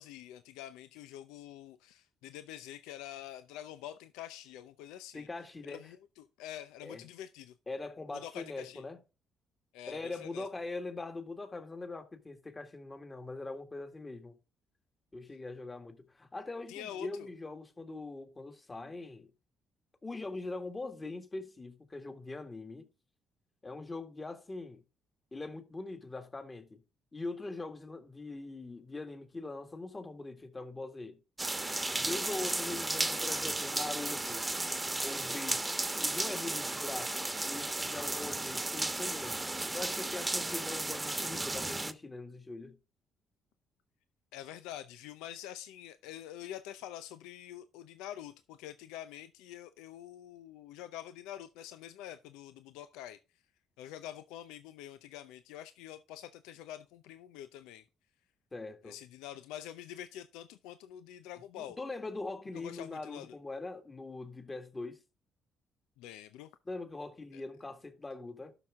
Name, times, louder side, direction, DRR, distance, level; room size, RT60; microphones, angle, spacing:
voice 1, 0.0-5.3 5.7-7.5 8.1-8.8 9.7-10.5 16.7-17.3 44.3-53.2 53.8-57.8 58.8-61.8 62.5-63.4 66.0-66.5 67.3-67.4, left 11 dB, 85° left, 0.5 m, -46 dB
voice 2, 5.1-5.8 6.8-7.0 7.7-9.0 9.9-14.4 15.1-19.3 20.0-22.9 23.6-24.8 25.3-26.8 27.1-31.2 32.0-34.5 35.0-35.8 36.0-42.8 58.5-59.0 61.6-65.0 66.7-68.5, left 3 dB, 25° left, 1.9 m, -42 dB
sound 1, 31.4-41.9, right 2 dB, 15° right, 1.1 m, -34 dB
12.0 x 5.9 x 3.6 m
supercardioid pair, 65°, 0 cm